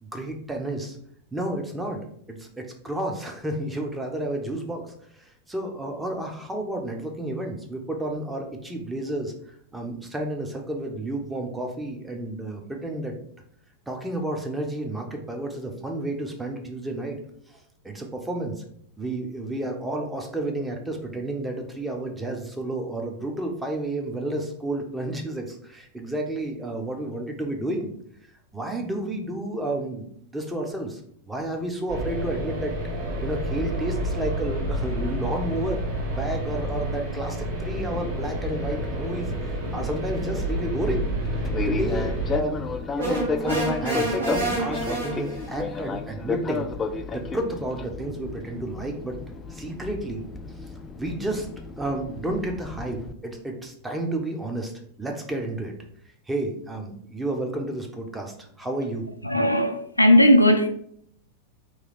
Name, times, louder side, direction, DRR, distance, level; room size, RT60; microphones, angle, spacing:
voice 1, 0.0-1.0 1.3-2.0 2.3-9.3 9.7-13.2 13.9-17.2 17.5-17.6 17.8-18.6 19.0-27.9 28.5-31.0 31.3-32.7 33.2-41.0 41.6-46.7 47.1-49.2 49.5-50.2 51.0-51.5 51.8-54.7 55.0-55.7 56.3-59.0, right 1 dB, 10° right, 0.7 m, -31 dB
sound 1, 31.9-42.4, right 1 dB, 55° right, 1.4 m, -29 dB
Fixed-wing aircraft airplane, 37.8-53.1, left 5 dB, 20° left, 0.3 m, -33 dB
sound 2, 43.0-45.6, right 2 dB, 75° right, 1.6 m, -28 dB
voice 2, 59.2-60.7, left 1 dB, 85° left, 0.4 m, -17 dB
3.1 x 2.8 x 3.9 m
figure-of-eight pair, 90°, 0 cm